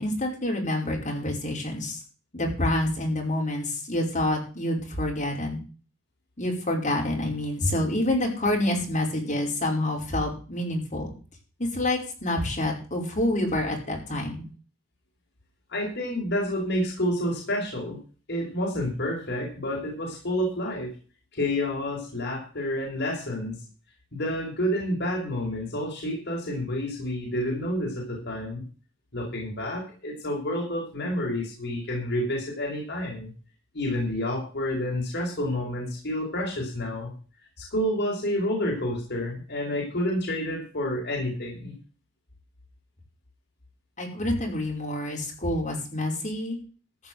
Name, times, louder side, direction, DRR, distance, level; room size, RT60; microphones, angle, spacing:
voice 1, 0.0-2.0 2.3-5.6 6.4-11.1 11.6-14.4 44.0-46.6, left 1 dB, 35° left, 0 dB, 5.2 m, -27 dB
voice 2, 15.7-18.0 18.3-20.9 21.3-23.6 24.1-28.6 29.1-33.3 33.7-37.1 37.6-41.7, left 1 dB, 55° left, -2 dB, 5.1 m, -29 dB
15.0 x 6.1 x 7.8 m, 0.38 s
head